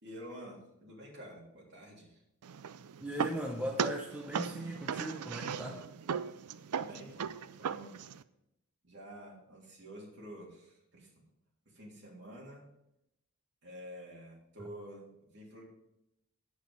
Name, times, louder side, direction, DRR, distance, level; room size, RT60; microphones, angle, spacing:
voice 1, 0.0-2.2 6.7-8.0 8.8-11.1 11.6-12.7 13.6-15.6, equal, 50° right, -3 dB, 3.1 m, -49 dB
sound 1, 2.4-8.2, right 7 dB, 90° right, 0.5 m, -38 dB
voice 2, 3.0-5.9, equal, 5° right, 0 dB, 0.8 m, -38 dB
9.5 x 8.2 x 5.3 m, 0.84 s
head